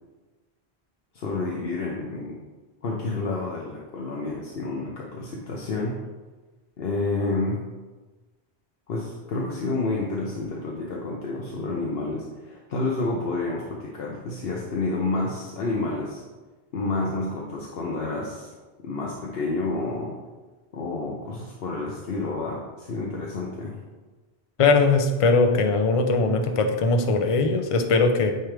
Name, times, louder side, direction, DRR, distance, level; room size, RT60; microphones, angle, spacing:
voice 1, 1.1-2.3 2.8-6.0 6.8-7.6 8.9-16.2 16.7-18.5 18.8-20.1 20.7-23.8, left 3 dB, 70° left, -3 dB, 0.9 m, -29 dB
voice 2, 24.6-28.3, left 3 dB, 40° left, 5 dB, 0.5 m, -20 dB
9.2 x 3.3 x 3.3 m, 1.3 s
omnidirectional pair, 1.1 m